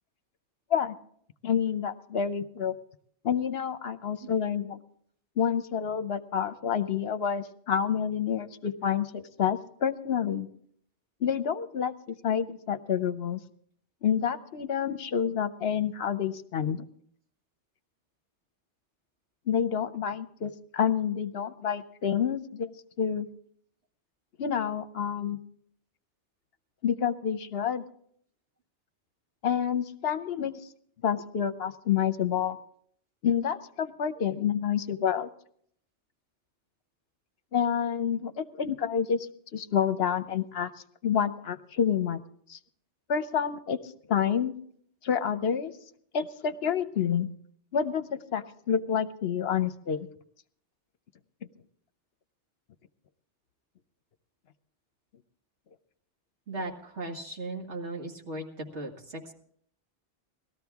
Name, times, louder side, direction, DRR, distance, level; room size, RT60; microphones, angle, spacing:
voice 1, 1.4-2.7 3.2-4.8 5.4-10.5 11.2-13.4 14.0-16.8 19.5-23.3 24.4-25.4 26.8-27.8 29.4-30.5 31.0-32.6 33.2-35.3 37.5-39.3 39.5-40.7 41.0-42.2 42.5-42.6 43.1-43.8 44.1-44.5 45.0-45.7 46.1-47.3 47.7-50.1, left 8 dB, 65° left, 11 dB, 0.9 m, -28 dB
voice 2, 56.5-59.3, right 2 dB, 75° right, 1 dB, 2.3 m, -37 dB
19.0 x 13.5 x 3.5 m, 0.63 s
omnidirectional pair, 1.2 m